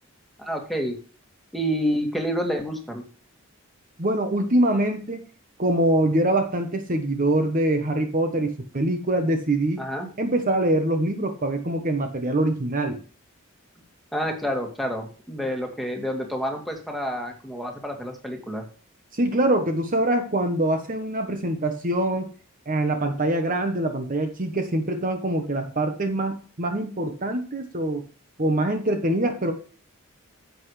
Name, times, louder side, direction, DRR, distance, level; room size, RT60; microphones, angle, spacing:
voice 1, 0.4-1.0 1.5-3.1 9.8-10.1 14.1-18.6, equal, ahead, 2 dB, 2.1 m, -28 dB
voice 2, 4.0-5.2 5.6-9.8 10.2-13.0 19.1-22.3 22.7-28.0 28.4-29.5, right 1 dB, 40° right, 6 dB, 1.1 m, -24 dB
10.5 x 8.0 x 3.2 m, 0.39 s
head